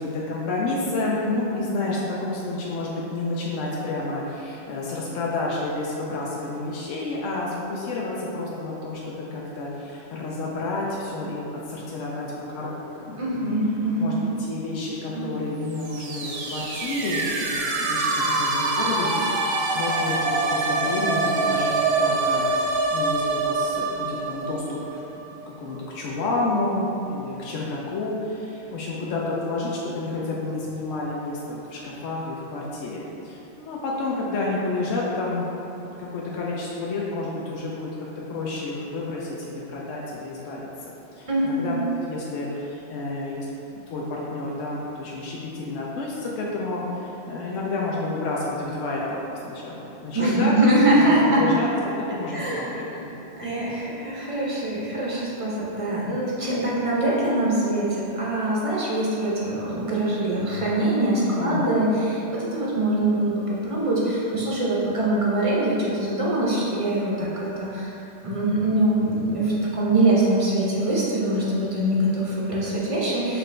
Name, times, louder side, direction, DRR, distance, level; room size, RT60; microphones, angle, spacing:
voice 1, 0.0-13.6 14.0-22.5 22.9-25.0 25.6-35.5 35.8-37.9 38.3-41.8 42.0-43.5 43.7-50.5 50.9-53.1 61.3-62.0, left 2 dB, 85° left, -5 dB, 0.9 m, -30 dB
voice 2, 13.2-14.2 15.1-15.3 41.3-41.8 50.1-51.4 52.3-52.7 53.3-67.9 68.2-73.4, right 1 dB, 40° right, -5 dB, 0.5 m, -23 dB
sound 1, 15.7-25.4, right 3 dB, 65° right, 0.8 m, -25 dB
5.9 x 2.5 x 3.2 m, 3.0 s
omnidirectional pair, 1.3 m